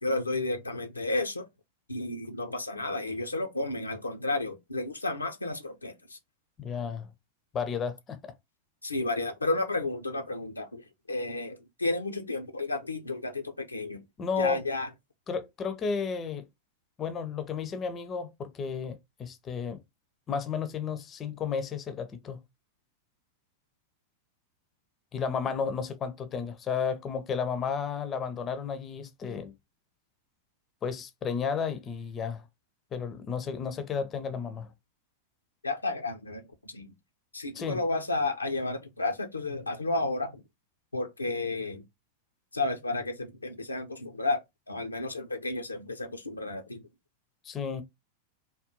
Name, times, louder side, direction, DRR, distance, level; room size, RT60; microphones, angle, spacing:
voice 1, 0.0-1.5 1.9-6.2 8.8-14.0 14.4-14.9 35.6-36.9 37.3-40.4 40.9-41.9 42.5-44.4 44.7-46.9, left 2 dB, 80° left, 0.5 m, -32 dB
voice 2, 6.6-7.1 7.5-8.3 14.2-14.6 15.3-16.5 17.0-19.8 20.3-22.4 25.1-29.5 30.8-32.5 32.9-34.7 37.6-37.8 47.4-47.8, left 6 dB, 25° left, 0.5 m, -32 dB
3.6 x 2.2 x 2.9 m
figure-of-eight pair, 90°, 0 cm